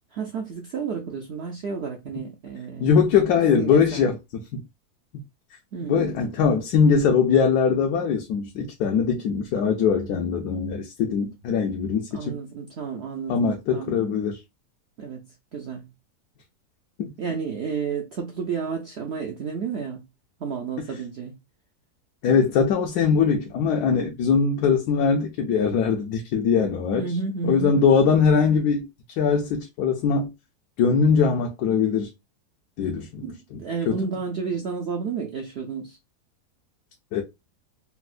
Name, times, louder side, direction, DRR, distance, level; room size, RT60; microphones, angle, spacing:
voice 1, 0.1-2.9 3.2-4.1 5.7-6.2 12.1-14.0 15.0-15.9 17.2-20.0 20.4-21.4 26.9-27.9 33.2-36.0, right 5 dB, 70° right, 0.6 m, -31 dB
voice 2, 2.8-4.2 4.5-4.6 5.9-12.4 13.3-14.4 17.0-17.1 22.2-27.1 27.4-28.9 29.2-30.3 30.8-32.1 32.8-33.2 33.5-33.6 33.9-34.0 37.1-37.2, left 6 dB, 80° left, 1.1 m, -21 dB
4.2 x 2.1 x 2.4 m
omnidirectional pair, 1.7 m